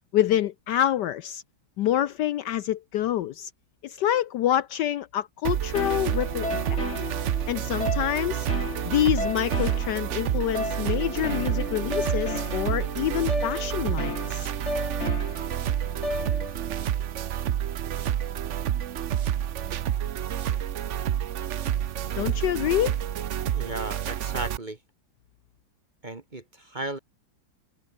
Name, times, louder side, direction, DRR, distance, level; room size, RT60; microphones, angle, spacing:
voice 1, 0.1-1.4 1.8-3.5 3.8-6.8 7.5-8.5 8.8-14.5 22.2-23.0, left 12 dB, 70° left, 1.1 m, -27 dB
sound 1, 5.4-24.6, right 10 dB, 65° right, 0.7 m, -29 dB
sound 2, 5.7-16.7, left 2 dB, 35° left, 6.1 m, -34 dB
voice 2, 23.5-24.8 26.0-27.0, right 1 dB, 25° right, 1.4 m, -35 dB
omnidirectional pair, 2.2 m